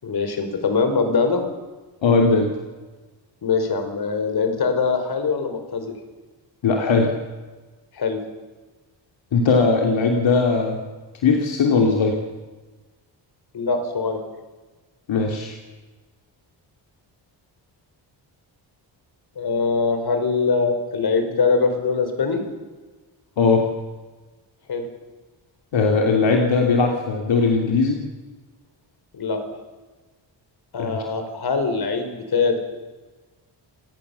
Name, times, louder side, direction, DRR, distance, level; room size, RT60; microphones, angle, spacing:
voice 1, 0.0-1.4 3.4-5.9 7.9-8.2 13.5-14.2 19.4-22.4 24.7-24.9 29.1-29.4 30.7-32.6, left 4 dB, 55° left, 6 dB, 4.9 m, -22 dB
voice 2, 2.0-2.5 6.6-7.1 9.3-10.8 11.2-12.1 15.1-15.5 23.4-23.6 25.7-28.0 30.8-31.0, left 4 dB, 75° left, 1 dB, 3.1 m, -19 dB
28.0 x 18.5 x 7.1 m, 1.2 s
wide cardioid pair, 120°, 46 cm